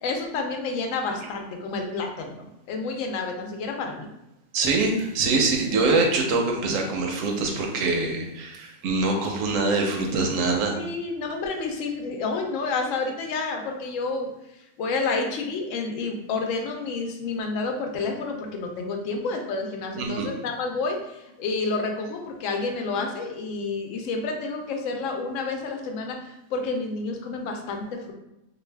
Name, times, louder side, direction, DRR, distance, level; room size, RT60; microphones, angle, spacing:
voice 1, 0.0-4.1 10.8-14.3 14.8-28.1, left 3 dB, 70° left, 3 dB, 0.9 m, -29 dB
voice 2, 4.5-10.8 20.0-20.3, right 3 dB, 70° right, 2 dB, 0.9 m, -24 dB
2.6 x 2.3 x 3.2 m, 0.89 s
omnidirectional pair, 1.5 m